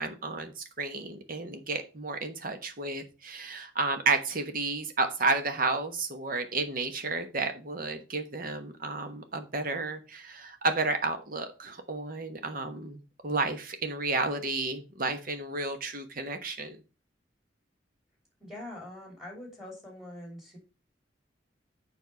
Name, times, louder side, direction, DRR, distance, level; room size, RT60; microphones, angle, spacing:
voice 1, 0.0-16.8, right 3 dB, 50° right, 7 dB, 1.2 m, -32 dB
voice 2, 18.4-20.6, left 1 dB, ahead, 0 dB, 3.1 m, -43 dB
7.1 x 5.5 x 5.4 m, 0.31 s
head